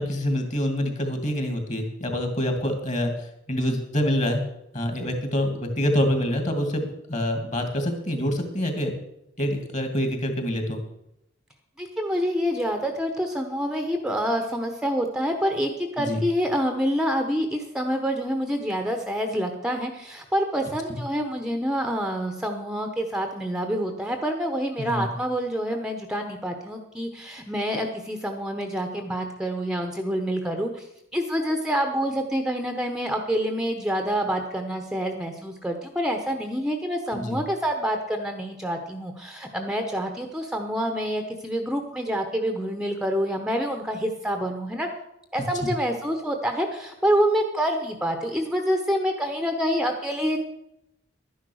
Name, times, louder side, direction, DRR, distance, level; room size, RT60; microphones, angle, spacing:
voice 1, 0.0-4.4 4.7-9.0 9.4-10.8 16.0-16.2 20.9-21.0 24.8-25.1 37.1-37.4 45.6-45.7, equal, 35° left, 6 dB, 2.4 m, -26 dB
voice 2, 11.8-30.9 31.1-44.9 45.3-50.4, equal, 5° right, 5 dB, 1.0 m, -27 dB
12.0 x 10.5 x 6.4 m, 0.83 s
head